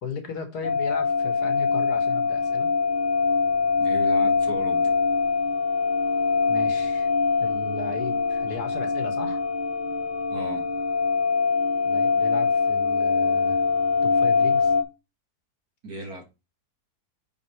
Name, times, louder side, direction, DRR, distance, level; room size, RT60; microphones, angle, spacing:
voice 1, 0.0-2.7 6.5-7.1 7.4-9.4 11.9-13.6 14.0-14.7, left 5 dB, 85° left, 2.1 m, -36 dB
sound 1, 0.6-14.8, left 5 dB, 40° left, 0.9 m, -23 dB
voice 2, 3.8-5.0 10.3-10.7 15.8-16.2, right 2 dB, 80° right, 2.9 m, -36 dB
8.8 x 3.8 x 4.8 m
omnidirectional pair, 1.7 m